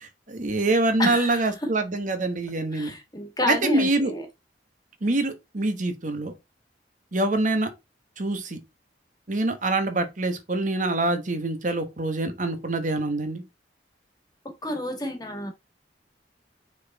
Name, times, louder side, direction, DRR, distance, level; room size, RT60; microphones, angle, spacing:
voice 1, 0.0-2.9 3.5-4.1 5.0-6.3 7.1-7.7 8.2-8.6 9.3-13.4, right 2 dB, 45° right, 1.2 m, -25 dB
voice 2, 1.0-1.5 2.7-4.2 14.6-15.5, left 1 dB, 20° left, 1.8 m, -29 dB
6.2 x 4.2 x 4.1 m
head